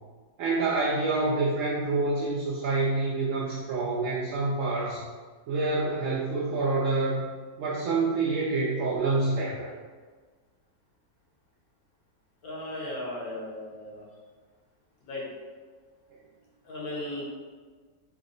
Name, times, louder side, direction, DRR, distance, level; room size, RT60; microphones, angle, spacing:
voice 1, 0.4-5.0 5.5-7.3 7.6-9.7, right 3 dB, 65° right, -6 dB, 0.8 m, -27 dB
voice 2, 12.4-14.1 15.0-15.2 16.7-17.2, left 1 dB, 65° left, -4 dB, 1.3 m, -36 dB
3.6 x 2.0 x 3.8 m, 1.5 s
omnidirectional pair, 1.7 m